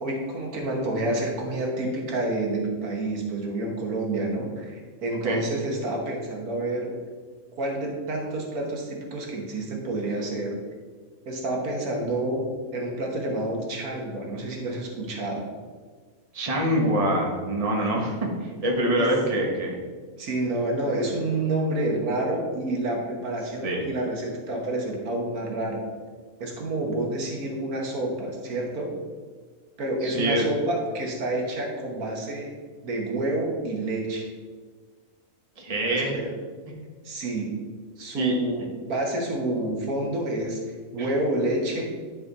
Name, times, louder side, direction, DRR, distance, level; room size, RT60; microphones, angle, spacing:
voice 1, 0.0-6.9 7.6-10.6 11.2-15.4 19.0-19.1 20.2-25.8 26.4-29.0 29.8-32.5 32.8-34.3 35.9-36.3 37.0-37.6 38.0-42.0, right 2 dB, 85° right, 1 dB, 1.7 m, -28 dB
voice 2, 16.3-18.2 18.4-19.7 23.6-23.8 30.0-30.5 35.6-36.1 38.2-38.3 41.0-41.1, right 1 dB, 25° right, -1 dB, 1.2 m, -25 dB
10.5 x 4.1 x 4.0 m, 1.5 s
omnidirectional pair, 1.5 m